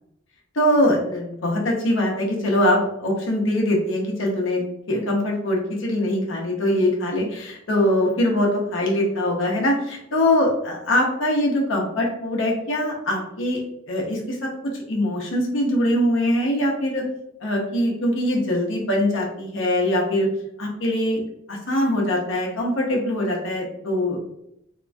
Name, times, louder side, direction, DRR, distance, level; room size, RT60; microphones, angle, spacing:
voice 1, 0.5-4.6 4.9-17.1 17.4-20.3 20.6-21.2 21.5-24.2, left 1 dB, 75° left, -1 dB, 0.7 m, -22 dB
2.9 x 2.3 x 2.5 m, 0.80 s
head